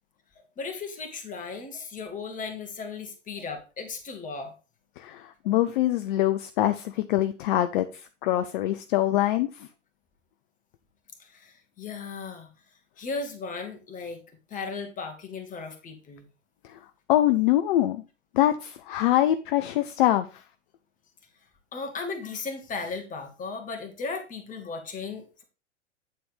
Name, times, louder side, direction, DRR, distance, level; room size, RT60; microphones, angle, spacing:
voice 1, 0.6-4.5 5.4-5.6 11.2-12.5 13.0-14.2 14.5-16.3 21.7-25.4, left 4 dB, 20° left, 4 dB, 1.9 m, -36 dB
voice 2, 5.0-7.9 8.2-9.7 17.1-18.0 18.3-20.3, left 13 dB, 45° left, 10 dB, 0.7 m, -24 dB
9.3 x 4.2 x 4.9 m, 0.31 s
hypercardioid pair, 110°, 37 cm